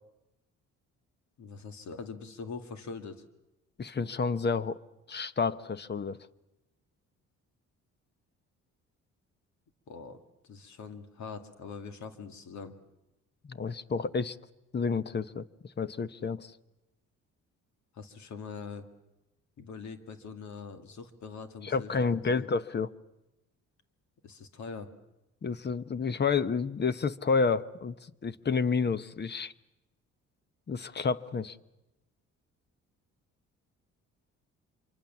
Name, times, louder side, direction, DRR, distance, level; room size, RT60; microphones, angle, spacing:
voice 1, 1.4-3.2 9.9-10.2 10.4-12.7 17.9-18.9 19.6-22.5 24.2-24.9, left 5 dB, 70° left, 8 dB, 2.4 m, -43 dB
voice 2, 3.8-4.8 5.1-6.2 13.4-14.4 14.7-15.4 15.8-16.5 21.6-22.9 25.4-29.5 30.7-31.6, left 5 dB, 35° left, 15 dB, 1.0 m, -30 dB
26.0 x 24.5 x 7.3 m, 0.96 s
cardioid pair, 90°, 30 cm